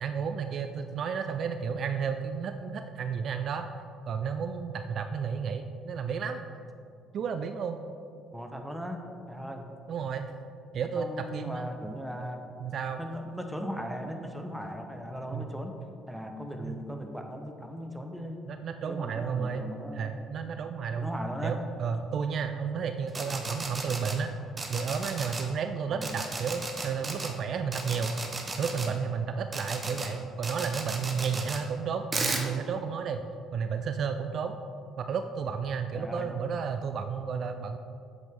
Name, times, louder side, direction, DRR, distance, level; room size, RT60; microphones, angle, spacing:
voice 1, 0.0-3.7 4.1-6.5 7.1-7.8 9.9-10.2 10.7-11.7 12.6-13.0 15.3-15.5 16.6-16.7 18.5-19.7 19.9-21.1 21.4-24.3 24.7-28.1 28.6-33.3 33.5-34.6 35.0-37.8, right 6 dB, 55° right, 7 dB, 0.3 m, -32 dB
voice 2, 8.3-9.0 9.3-9.7 11.0-12.4 13.0-15.8 16.1-18.4 18.9-20.2 21.0-21.6 23.2-23.4 25.9-26.2 29.9-30.1 35.9-36.3, equal, 5° right, 4 dB, 1.1 m, -38 dB
sound 1, 23.1-24.1 24.6-25.4 26.0-27.3 27.7-28.9 29.5-30.1 30.4-31.6 32.1-32.4, right 3 dB, 30° right, 1.1 m, -34 dB
7.9 x 7.6 x 3.6 m, 2.5 s
hypercardioid pair, 50°, 0 cm